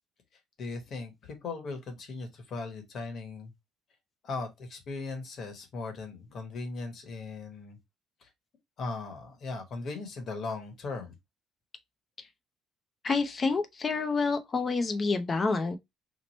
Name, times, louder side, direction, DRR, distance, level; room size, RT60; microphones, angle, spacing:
voice 1, 0.6-3.5 4.2-7.8 8.2-8.3 8.8-11.2, left 3 dB, 45° left, 1.1 m, -38 dB
voice 2, 13.0-15.8, left 4 dB, 25° left, 0.5 m, -28 dB
3.0 x 2.1 x 4.1 m
cardioid pair, 145°, 0 cm